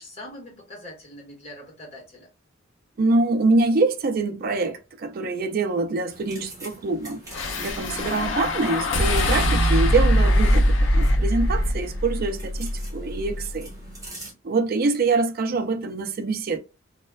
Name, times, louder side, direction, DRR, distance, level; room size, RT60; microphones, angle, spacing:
voice 1, 0.0-2.3, left 1 dB, 30° left, 1.2 m, -42 dB
voice 2, 3.0-7.2 7.6-13.7 14.4-16.6, right 3 dB, 50° right, 0.4 m, -24 dB
sound 1, 6.1-14.3, right 2 dB, 15° right, 1.2 m, -45 dB
sound 2, 7.3-13.7, equal, 65° left, 0.6 m, -22 dB
3.1 x 2.1 x 2.2 m
head